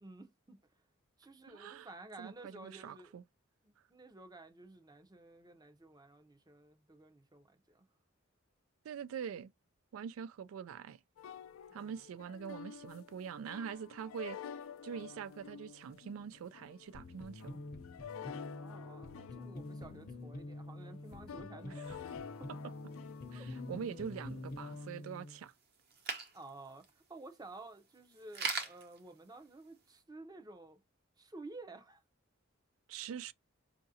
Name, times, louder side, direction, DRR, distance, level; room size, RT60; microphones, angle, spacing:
voice 1, 0.0-0.6 1.2-3.1 3.6-7.9 11.7-11.9 18.5-22.0 22.4-22.5 23.3-23.5 26.3-30.8 31.2-32.0, right 2 dB, 20° right, 0.6 m, -53 dB
voice 2, 1.5-1.9 2.2-3.2 8.8-9.5 9.9-11.0 11.7-14.4 14.8-17.6 21.8-22.0 23.3-25.5 32.9-33.3, right 7 dB, 85° right, 0.3 m, -44 dB
sound 1, 11.2-24.9, left 7 dB, 80° left, 0.4 m, -50 dB
sound 2, 16.9-25.4, left 1 dB, 45° left, 0.7 m, -47 dB
sound 3, 21.8-30.0, right 4 dB, 50° right, 1.0 m, -46 dB
5.6 x 2.5 x 2.7 m
head